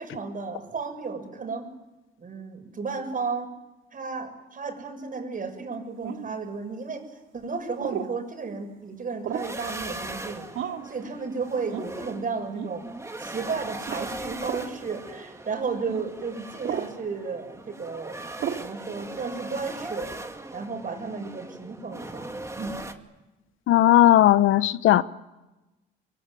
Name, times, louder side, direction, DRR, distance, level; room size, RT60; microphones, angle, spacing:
voice 1, 0.0-1.7 2.2-3.5 3.9-7.0 7.3-12.9 13.2-18.2 18.6-20.2 20.5-22.3 22.6-22.8, right 4 dB, 45° right, 6.8 m, -33 dB
sound 1, 6.0-6.4 7.8-8.1 9.2-9.6 10.5-10.9 11.7-11.9 12.5-12.7 13.8-14.0 14.4-14.7 15.9-16.0 16.6-16.9 18.4-18.7, right 9 dB, 80° right, 2.5 m, -33 dB
sound 2, 9.3-22.9, right 2 dB, 15° right, 2.4 m, -39 dB
voice 2, 23.7-25.0, left 13 dB, 80° left, 0.9 m, -17 dB
24.0 x 23.5 x 9.8 m
cardioid pair, 90°, 20 cm